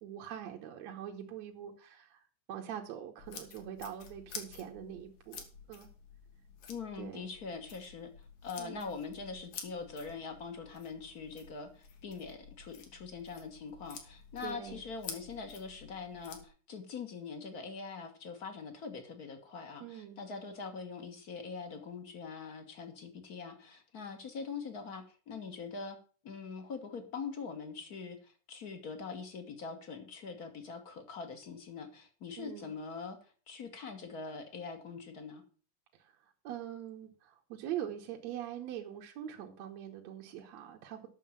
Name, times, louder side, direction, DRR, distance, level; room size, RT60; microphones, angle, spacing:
voice 1, 0.0-5.9 7.0-7.3 8.6-8.9 14.4-14.8 19.8-20.2 32.4-32.7 35.9-36.2 36.4-41.1, right 10 dB, 70° right, 1 dB, 2.1 m, -43 dB
sound 1, 3.2-16.5, left 6 dB, 70° left, 3.0 m, -50 dB
voice 2, 6.7-8.1 8.4-26.0 26.2-33.2 33.5-35.4, left 5 dB, 45° left, 6 dB, 1.3 m, -43 dB
9.2 x 6.6 x 7.2 m, 0.40 s
omnidirectional pair, 3.6 m